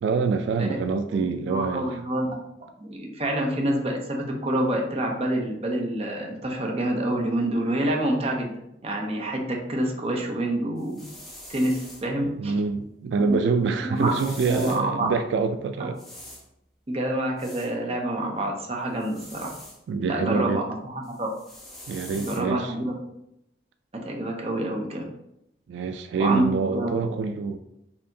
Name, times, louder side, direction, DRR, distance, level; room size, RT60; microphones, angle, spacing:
voice 1, 0.0-1.9 12.4-16.0 19.9-20.6 21.9-22.7 25.7-27.6, right 5 dB, 90° right, 8 dB, 0.3 m, -26 dB
voice 2, 1.1-2.3 2.8-8.5 8.8-11.1 11.5-12.6 13.3-13.4 13.8-15.1 15.8-15.9 16.9-19.5 20.0-21.3 22.1-22.9 24.0-25.0 26.2-26.4 26.7-27.2, right 1 dB, 35° right, 1 dB, 0.6 m, -27 dB
sound 1, 10.8-12.1 14.0-14.8 15.9-16.4 17.4-17.7 19.0-19.8 21.0-22.4, left 1 dB, ahead, 0.7 m, -44 dB
4.3 x 2.8 x 2.7 m, 0.79 s
head